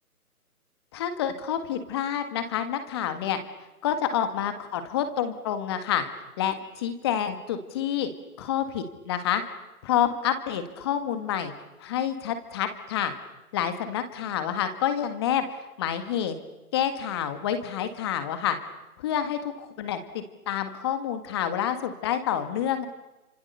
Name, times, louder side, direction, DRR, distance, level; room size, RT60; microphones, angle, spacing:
voice 1, 0.9-3.4 3.8-6.0 6.4-8.1 8.4-9.4 9.8-11.5 11.8-13.1 13.5-15.4 15.8-16.4 16.7-18.6 19.0-22.9, left 9 dB, 15° left, 9 dB, 1.7 m, -28 dB
29.5 x 26.0 x 6.8 m, 1.0 s
figure-of-eight pair, 155°, 45 cm